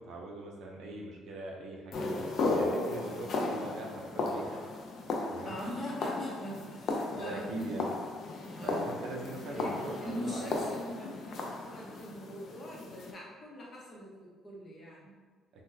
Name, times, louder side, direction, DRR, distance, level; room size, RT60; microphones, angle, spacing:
voice 1, 0.0-4.6 5.3-5.6 7.1-7.9 8.6-10.7, right 2 dB, 65° right, 0 dB, 0.5 m, -42 dB
sound 1, 1.9-13.1, left 3 dB, 55° left, 0.4 m, -35 dB
voice 2, 5.4-7.7 8.4-8.9 9.5-15.1, equal, 30° left, -4 dB, 0.8 m, -42 dB
3.8 x 2.2 x 2.7 m, 1.4 s
cardioid pair, 150°, 0 cm